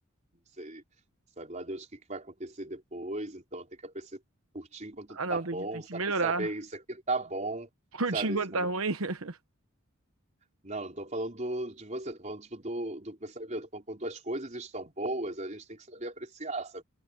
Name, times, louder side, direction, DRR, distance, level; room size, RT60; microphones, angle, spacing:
voice 1, 1.4-4.1 4.5-5.9 6.2-7.7 8.1-8.7 10.6-16.8, right 2 dB, 35° right, 4.3 m, -37 dB
voice 2, 5.1-6.5 7.9-9.4, right 3 dB, 80° right, 1.1 m, -31 dB
head